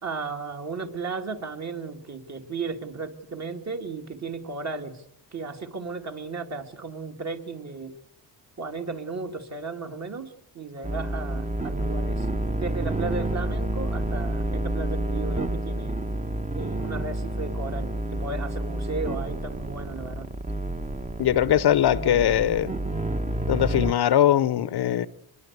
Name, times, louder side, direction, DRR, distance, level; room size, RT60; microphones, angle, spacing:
voice 1, 0.0-5.0 5.3-8.0 8.6-16.0 16.6-20.3, right 4 dB, 35° right, 2.4 m, -35 dB
sound 1, 10.8-23.9, right 1 dB, 15° right, 1.1 m, -29 dB
voice 2, 21.2-22.7 23.5-25.1, left 11 dB, 60° left, 0.9 m, -21 dB
23.5 x 21.5 x 8.1 m
cardioid pair, 115°, 45 cm